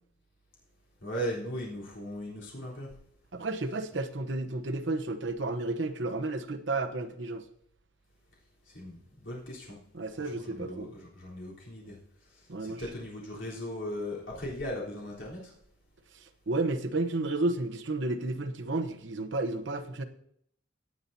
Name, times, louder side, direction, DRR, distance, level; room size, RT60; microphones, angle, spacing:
voice 1, 1.0-2.9 8.7-9.8 10.1-15.5, equal, 70° left, -6 dB, 3.8 m, -38 dB
voice 2, 3.3-7.4 9.9-10.9 12.5-12.8 16.5-20.0, right 2 dB, 75° right, 6 dB, 1.0 m, -32 dB
17.5 x 8.6 x 2.8 m, 0.68 s
head